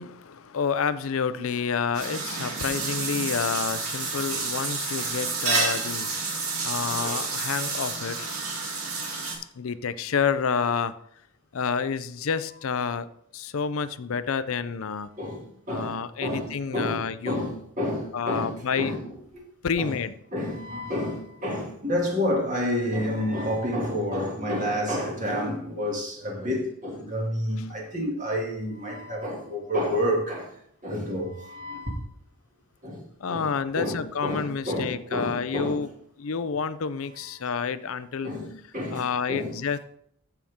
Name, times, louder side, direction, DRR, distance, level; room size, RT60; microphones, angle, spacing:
voice 1, 0.0-8.3 9.6-10.9 11.5-13.1 13.3-15.1 15.7-17.5 18.1-19.0 19.6-20.1 33.2-35.9 36.2-38.3 38.9-39.8, left 6 dB, 70° left, 0.5 m, -29 dB
sound 1, 1.9-9.3, right 4 dB, 80° right, 2.8 m, -29 dB
voice 2, 15.2-15.9 16.2-19.1 19.8-20.0 20.3-30.5 30.8-32.0 32.8-33.0 33.3-33.5 33.8-35.8 38.2-39.6, left 1 dB, 35° right, 2.4 m, -29 dB
14.5 x 5.8 x 3.6 m
head